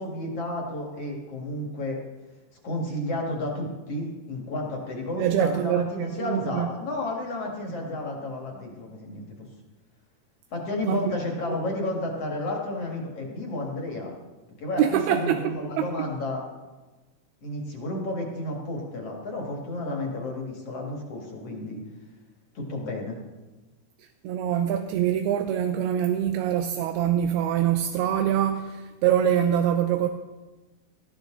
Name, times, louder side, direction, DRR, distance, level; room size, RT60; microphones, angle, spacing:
voice 1, 0.0-2.0 2.6-9.5 10.5-14.2 14.6-16.4 17.4-21.8 22.5-23.2, left 2 dB, 45° left, 0 dB, 2.4 m, -32 dB
voice 2, 5.1-6.7 10.8-11.0 11.5-11.6 14.8-16.1 24.0-30.1, right 10 dB, 80° right, 7 dB, 2.6 m, -25 dB
18.5 x 13.5 x 3.8 m, 1.2 s
omnidirectional pair, 4.5 m